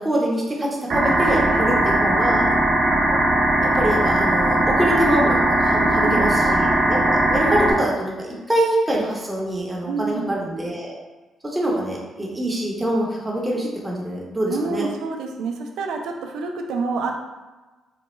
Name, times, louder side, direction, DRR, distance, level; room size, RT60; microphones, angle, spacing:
voice 1, 0.0-2.5 3.8-11.0 11.5-14.8, right 1 dB, 15° right, -4 dB, 0.9 m, -24 dB
sound 1, 0.9-7.7, right 1 dB, 55° right, 0.8 m, -19 dB
voice 2, 5.8-6.4 9.8-10.4 14.5-17.1, right 4 dB, 85° right, 3 dB, 0.4 m, -28 dB
4.1 x 2.2 x 3.1 m, 1.2 s
cardioid pair, 90°, 0 cm